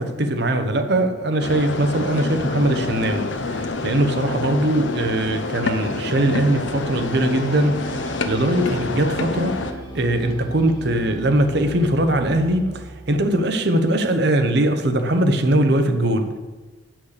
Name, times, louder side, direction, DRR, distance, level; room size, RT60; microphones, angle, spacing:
voice 1, 0.0-16.4, right 1 dB, 55° right, 0.9 m, -21 dB
sound 1, 1.4-9.7, left 3 dB, 65° left, 0.8 m, -27 dB
sound 2, 6.6-13.1, right 1 dB, 25° left, 2.0 m, -37 dB
8.1 x 6.1 x 6.6 m
head